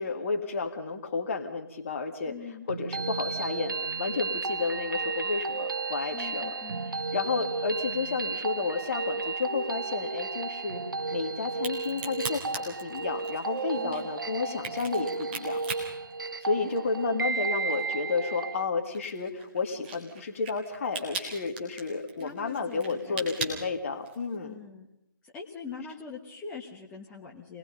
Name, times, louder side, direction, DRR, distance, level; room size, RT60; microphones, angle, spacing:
voice 1, 0.0-2.3 2.7-6.5 7.1-10.8 11.1-15.6 16.4-24.6, left 4 dB, 35° left, 5 dB, 2.0 m, -31 dB
voice 2, 2.3-2.7 6.1-6.9 13.7-14.1 16.6-16.7 17.1-17.2 22.2-23.5 24.4-24.9 25.2-27.6, left 5 dB, 10° left, -3 dB, 1.4 m, -43 dB
sound 1, 2.7-18.7, right 4 dB, 65° right, 0.9 m, -33 dB
Crack, 11.5-17.0 17.3-24.4, right 4 dB, 30° right, 3.6 m, -39 dB
26.0 x 19.5 x 5.4 m, 0.82 s
figure-of-eight pair, 145°, 12 cm